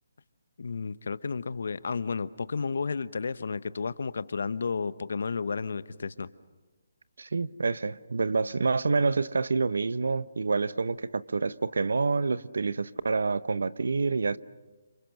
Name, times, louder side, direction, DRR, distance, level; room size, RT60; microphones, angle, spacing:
voice 1, 0.6-6.3, left 5 dB, 65° left, 1.0 m, -32 dB
voice 2, 7.2-14.4, right 4 dB, 75° right, 0.9 m, -27 dB
29.0 x 26.5 x 6.5 m
figure-of-eight pair, 155°, 0 cm